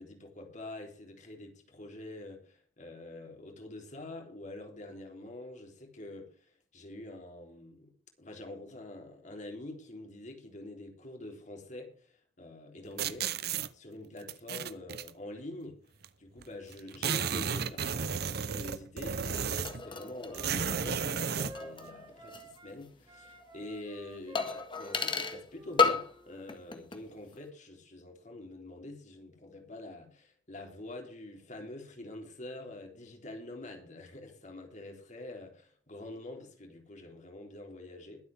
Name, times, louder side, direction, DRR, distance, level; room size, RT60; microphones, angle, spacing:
voice 1, 0.0-6.4 6.7-13.3 13.7-15.8 16.2-38.3, left 2 dB, 45° left, 3 dB, 3.6 m, -46 dB
sound 1, 13.0-13.7 14.3-15.1 16.0-16.1 16.4-16.5 16.7-19.9 20.3-21.6, right 6 dB, 60° right, 0.9 m, -33 dB
sound 2, 19.2-22.6 22.8-22.9 24.4-25.4 25.8-26.2 26.5-27.0 27.3-27.4, left 4 dB, 30° left, 1.8 m, -33 dB
Wind instrument woodwind instrument, 19.8-22.8 23.1-26.4, right 1 dB, 25° right, 3.6 m, -50 dB
22.0 x 8.2 x 3.5 m, 0.43 s
head